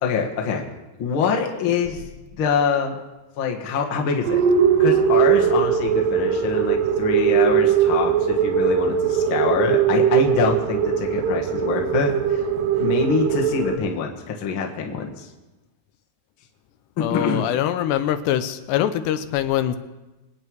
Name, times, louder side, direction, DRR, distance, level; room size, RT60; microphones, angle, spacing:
voice 1, 0.0-0.6 1.0-2.0 2.4-2.9 3.4-4.4 4.8-12.5 12.8-15.3 17.0-17.4, left 6 dB, 50° left, 1 dB, 1.6 m, -25 dB
sound 1, 4.2-13.8, right 8 dB, 70° right, 2.2 m, -20 dB
voice 2, 17.0-19.8, left 11 dB, 90° left, 10 dB, 3.0 m, -23 dB
25.5 x 9.1 x 4.7 m, 1.1 s
omnidirectional pair, 4.7 m